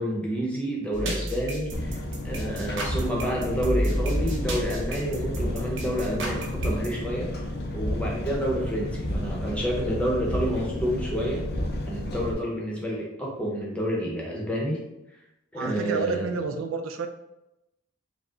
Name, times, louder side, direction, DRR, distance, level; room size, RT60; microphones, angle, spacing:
voice 1, 0.0-2.0 2.2-7.3 7.7-11.4 11.9-14.8 15.5-16.3, equal, 5° left, -3 dB, 0.7 m, -29 dB
sound 1, 0.9-6.9, equal, 65° right, 0.8 m, -31 dB
Engine, 1.7-12.3, left 1 dB, 50° left, 0.7 m, -31 dB
voice 2, 15.6-17.1, right 5 dB, 80° right, 7 dB, 0.4 m, -29 dB
4.9 x 2.1 x 3.7 m, 0.92 s
head